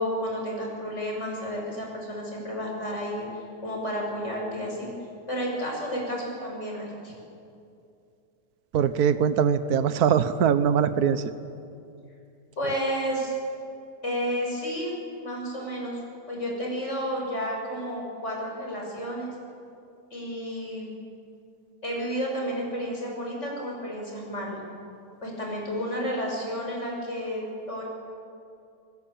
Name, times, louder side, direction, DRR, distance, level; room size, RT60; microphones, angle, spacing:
voice 1, 0.0-4.9 5.3-7.1 12.6-13.3 14.0-14.9 15.2-16.0 16.3-19.3 20.1-20.9 21.8-24.6 25.2-27.8, equal, 45° left, -1 dB, 7.0 m, -31 dB
voice 2, 8.7-11.3, right 7 dB, 65° right, 12 dB, 1.5 m, -22 dB
28.5 x 20.5 x 8.7 m, 2.6 s
omnidirectional pair, 1.8 m